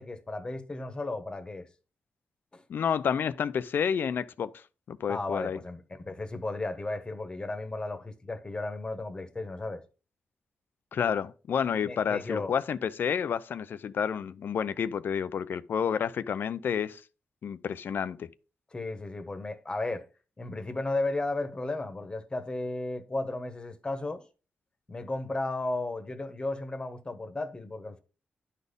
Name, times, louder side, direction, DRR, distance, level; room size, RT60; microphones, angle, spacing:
voice 1, 0.0-1.7 2.5-2.6 5.1-9.8 11.8-12.5 18.7-20.0 20.4-24.2 24.9-28.0, left 2 dB, 25° left, 1.3 m, -34 dB
voice 2, 2.7-5.6 10.9-17.0 17.4-18.3, left 7 dB, 70° left, 0.5 m, -30 dB
11.0 x 4.2 x 5.3 m
wide cardioid pair, 105°, 4 cm